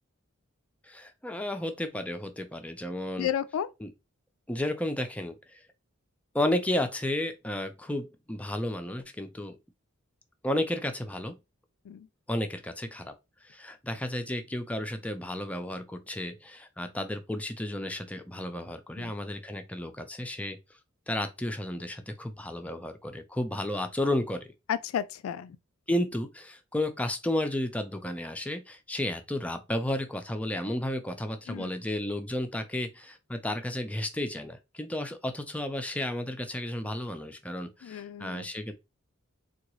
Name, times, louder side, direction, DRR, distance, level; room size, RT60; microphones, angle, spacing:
voice 1, 0.8-3.3 3.8-3.9 4.5-5.6 6.3-9.6 10.4-11.3 12.3-13.1 13.4-20.6 21.1-24.5 25.9-38.7, left 1 dB, 5° left, 0.4 m, -32 dB
voice 2, 3.2-3.7 11.9-12.1 19.0-19.1 24.7-25.6 31.5-31.7 37.8-38.5, left 9 dB, 75° left, 0.3 m, -32 dB
3.7 x 2.3 x 3.0 m
head